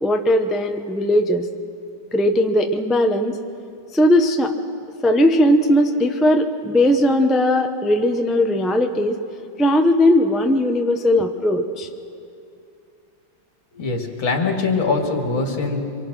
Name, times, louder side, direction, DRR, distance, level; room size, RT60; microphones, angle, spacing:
voice 1, 0.0-1.5 2.1-3.4 3.9-4.5 5.0-9.2 9.6-11.9, left 1 dB, ahead, 4 dB, 0.3 m, -18 dB
voice 2, 13.7-15.8, left 4 dB, 80° left, 2 dB, 3.0 m, -22 dB
25.5 x 23.0 x 6.2 m, 2.5 s
omnidirectional pair, 2.2 m